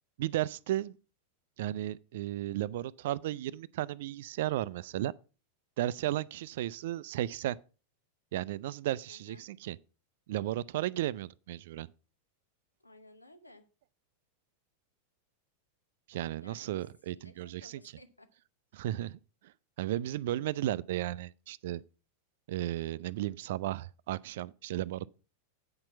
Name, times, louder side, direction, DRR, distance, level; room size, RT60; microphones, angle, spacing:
voice 1, 0.2-1.0 1.6-5.1 5.8-7.6 8.3-9.8 10.3-11.9 16.1-17.8 18.7-21.8 22.5-25.1, right 14 dB, 55° right, 0.3 m, -34 dB
voice 2, 9.1-9.5 12.8-13.7 16.4-18.3, left 1 dB, 85° left, 1.0 m, -57 dB
8.7 x 5.9 x 5.5 m
figure-of-eight pair, 90°, 0 cm